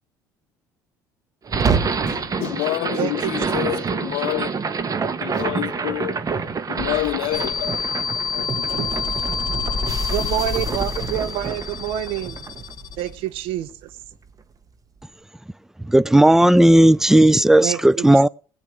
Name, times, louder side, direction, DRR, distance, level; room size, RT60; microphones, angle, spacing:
sound 1, 1.5-13.7, right 5 dB, 35° right, 1.4 m, -27 dB
voice 1, 2.1-4.5 5.2-6.3 6.7-8.0 8.3-9.2, left 21 dB, 70° left, 0.5 m, -28 dB
voice 2, 2.9-3.7 10.1-12.4 13.0-13.9 17.6-18.1, right 12 dB, 65° right, 0.9 m, -27 dB
sound 2, 7.3-13.1, left 7 dB, 45° left, 0.9 m, -28 dB
voice 3, 15.9-18.3, right 1 dB, 5° right, 0.4 m, -14 dB
20.0 x 9.1 x 3.4 m
hypercardioid pair, 60°, 10 cm